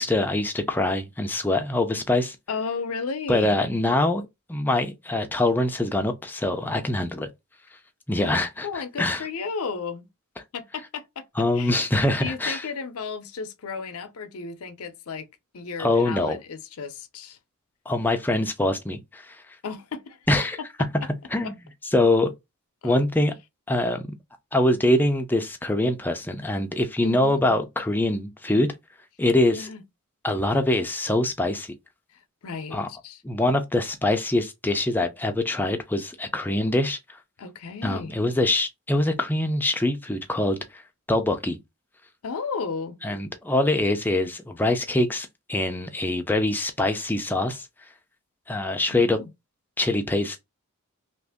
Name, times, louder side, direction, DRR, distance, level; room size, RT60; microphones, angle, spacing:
voice 1, 0.0-2.4 3.3-7.3 8.1-9.2 11.4-12.7 15.8-16.4 17.9-19.4 20.3-20.6 21.3-21.6 21.9-22.3 22.8-23.3 23.7-24.1 24.5-28.7 29.2-29.7 30.2-31.7 32.7-32.9 33.2-37.0 37.8-40.8 41.1-41.6 43.0-47.7 48.5-49.2 49.8-50.4, left 1 dB, 10° left, 0.4 m, -24 dB
voice 2, 2.5-3.6 8.2-8.4 8.6-10.1 10.5-11.8 12.2-15.3 15.5-17.4 19.6-20.2 21.4-21.5 22.8-23.0 27.0-27.6 29.5-29.8 32.1-33.2 37.4-38.2 42.2-43.0 48.9-49.3, left 5 dB, 75° left, 0.6 m, -34 dB
2.9 x 2.6 x 3.4 m
head